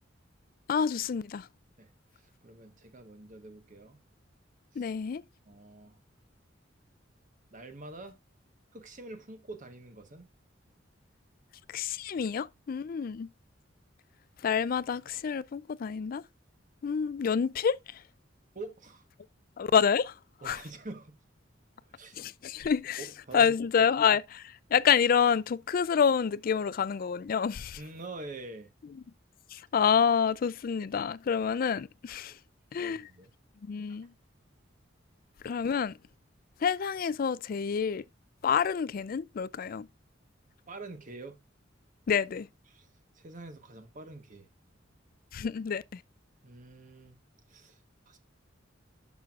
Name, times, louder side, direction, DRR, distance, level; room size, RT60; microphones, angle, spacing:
voice 1, 0.7-1.5 4.8-5.2 11.7-13.3 14.4-16.2 16.8-18.0 19.6-20.1 20.4-20.6 22.2-23.0 23.3-27.8 29.5-32.3 32.7-33.1 33.6-34.1 35.4-36.0 36.6-38.0 38.4-39.9 42.1-42.5 45.3-46.0, left 7 dB, 50° left, 0.4 m, -28 dB
voice 2, 2.4-4.0 4.7-4.9 5.5-6.0 7.5-8.2 8.7-10.3 13.0-13.1 18.5-19.0 20.4-21.2 21.8-22.2 23.0-23.9 27.8-28.7 32.7-33.3 33.9-34.0 40.7-41.4 42.7-42.9 43.1-44.5 46.4-47.2 47.5-47.8 48.1-48.2, right 2 dB, 45° right, 1.2 m, -46 dB
11.0 x 6.2 x 2.4 m
head